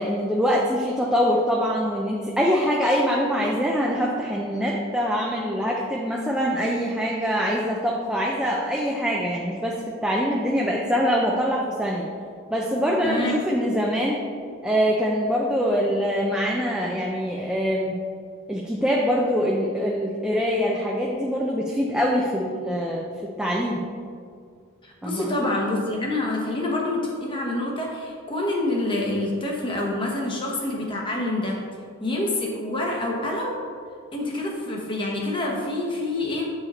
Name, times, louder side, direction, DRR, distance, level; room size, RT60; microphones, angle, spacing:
voice 1, 0.0-12.0 12.5-14.2 14.6-17.9 18.5-23.1 23.4-23.8 25.0-25.5, equal, 5° right, -3 dB, 0.5 m, -24 dB
voice 2, 13.0-13.4 24.8-31.6 32.0-33.6 34.1-36.5, left 2 dB, 25° left, -2 dB, 1.0 m, -27 dB
8.2 x 4.9 x 4.2 m, 2.2 s
head